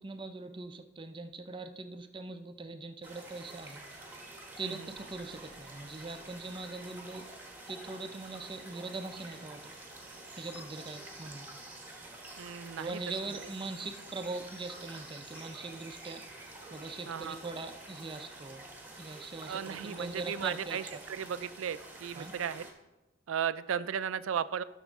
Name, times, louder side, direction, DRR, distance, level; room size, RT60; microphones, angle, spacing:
voice 1, 0.0-3.8 4.6-7.3 7.7-9.6 10.3-11.5 12.8-16.2 16.7-18.6 19.0-19.6 19.9-20.8 22.1-22.3, right 3 dB, 25° right, 8 dB, 0.5 m, -41 dB
sound 1, 3.0-22.7, right 2 dB, 10° right, 1.2 m, -48 dB
sound 2, 4.9-9.0, equal, 80° left, 2.3 m, -67 dB
voice 2, 12.4-13.0 17.1-17.4 19.4-22.7 23.3-24.6, right 8 dB, 85° right, 15 dB, 0.4 m, -35 dB
12.5 x 6.3 x 3.5 m, 1.0 s
head